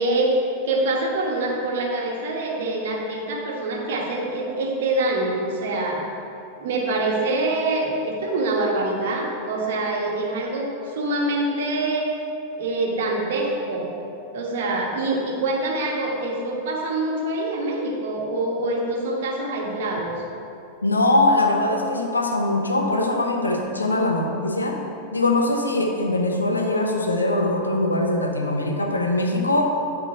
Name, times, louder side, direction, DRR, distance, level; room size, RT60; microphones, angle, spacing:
voice 1, 0.0-6.1 6.6-12.1 12.6-13.9 14.3-20.1, right 2 dB, 55° right, -1 dB, 1.2 m, -25 dB
voice 2, 20.8-24.8 25.1-29.8, left 2 dB, 80° left, 2 dB, 0.8 m, -22 dB
10.5 x 3.8 x 4.5 m, 2.8 s
figure-of-eight pair, 90°, 0 cm